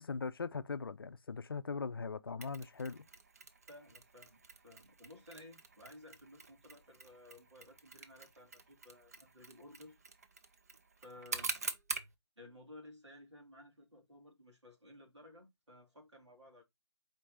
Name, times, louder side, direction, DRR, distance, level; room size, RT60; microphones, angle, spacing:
voice 1, 0.0-3.1, left 4 dB, 55° left, 0.5 m, -40 dB
Mechanisms, 2.4-12.1, right 4 dB, 35° right, 0.6 m, -46 dB
voice 2, 3.7-10.0 11.0-11.5 12.4-16.6, left 1 dB, 85° right, 2.4 m, -56 dB
4.5 x 4.4 x 2.5 m
figure-of-eight pair, 160°, 14 cm